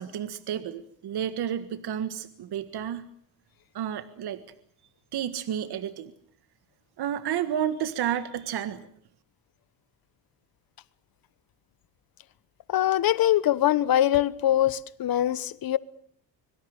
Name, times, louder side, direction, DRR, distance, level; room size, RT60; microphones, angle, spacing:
voice 1, 0.0-3.1 3.7-4.4 5.1-6.1 7.0-8.8, right 10 dB, 65° right, 1.7 m, -31 dB
voice 2, 12.7-15.8, left 12 dB, 55° left, 1.2 m, -23 dB
25.0 x 24.0 x 6.6 m
cardioid pair, 130°, 43 cm